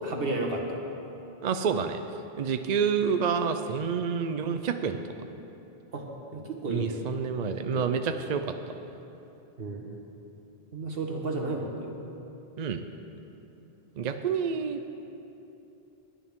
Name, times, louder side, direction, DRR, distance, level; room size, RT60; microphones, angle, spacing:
voice 1, 0.0-0.8 5.9-6.0 6.3-7.0 7.6-7.9 9.6-9.9 10.7-11.9, right 2 dB, 70° right, 1 dB, 1.6 m, -32 dB
voice 2, 1.4-2.0 2.4-5.0 6.7-8.5 12.6-12.8 14.0-14.8, right 6 dB, 50° right, 7 dB, 0.6 m, -28 dB
20.0 x 11.0 x 3.6 m, 2.9 s
omnidirectional pair, 1.0 m